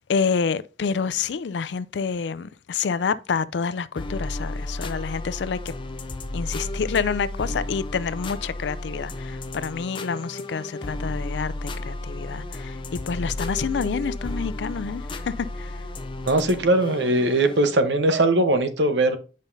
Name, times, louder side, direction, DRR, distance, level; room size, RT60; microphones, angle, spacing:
voice 1, 0.0-5.7 6.3-15.7, left 6 dB, 85° left, 0.4 m, -28 dB
sound 1, 4.0-17.8, left 1 dB, 30° left, 0.5 m, -33 dB
voice 2, 16.2-19.2, right 1 dB, 90° right, 1.0 m, -20 dB
9.0 x 5.3 x 2.6 m
head